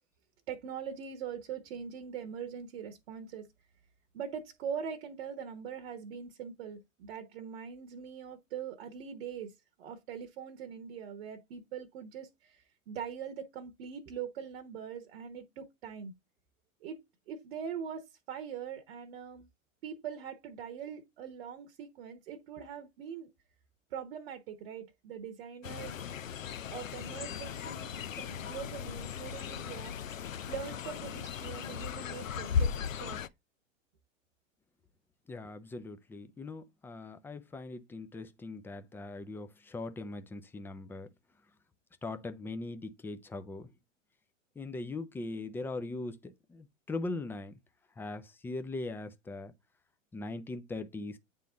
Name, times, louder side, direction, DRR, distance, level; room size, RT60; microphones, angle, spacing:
voice 1, 0.5-3.5 4.1-9.5 9.8-16.1 16.8-17.0 17.3-19.5 19.8-23.3 23.9-26.2 26.7-29.9 30.5-33.2, right 7 dB, 50° right, 1.1 m, -42 dB
Fowl, 25.6-33.3, left 7 dB, 80° left, 0.6 m, -37 dB
voice 2, 35.3-41.1 42.0-43.7 44.6-47.5 48.0-49.5 50.1-51.2, left 2 dB, 5° left, 0.5 m, -40 dB
9.1 x 3.7 x 3.9 m
figure-of-eight pair, 95°, 39 cm